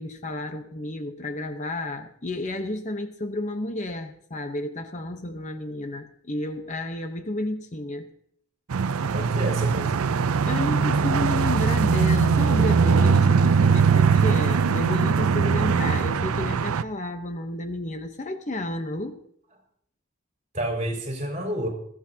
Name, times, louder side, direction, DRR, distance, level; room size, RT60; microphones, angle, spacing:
voice 1, 0.0-8.1 10.4-19.2, left 1 dB, 35° left, 7 dB, 0.9 m, -31 dB
sound 1, 8.7-16.8, right 5 dB, 90° right, 0.5 m, -21 dB
voice 2, 9.1-10.1 20.5-21.7, right 1 dB, 35° right, 0 dB, 4.6 m, -29 dB
21.0 x 14.5 x 2.8 m, 0.66 s
head